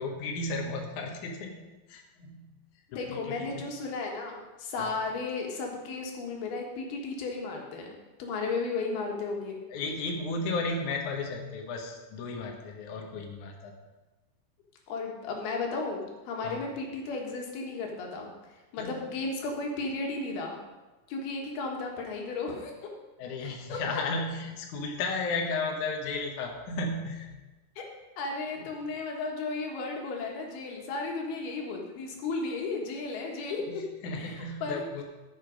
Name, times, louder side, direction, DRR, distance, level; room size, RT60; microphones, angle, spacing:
voice 1, 0.0-2.5 2.9-3.6 4.8-4.9 9.7-13.7 16.4-16.6 18.8-18.9 23.2-27.3 33.7-35.0, left 3 dB, 65° left, 2 dB, 2.4 m, -34 dB
voice 2, 2.9-7.9 8.2-9.6 14.9-20.6 21.1-22.7 23.4-24.0 27.8-27.9 28.2-33.8 34.1-34.8, left 3 dB, 85° left, 1 dB, 3.4 m, -34 dB
13.5 x 6.6 x 5.2 m, 1.1 s
omnidirectional pair, 4.3 m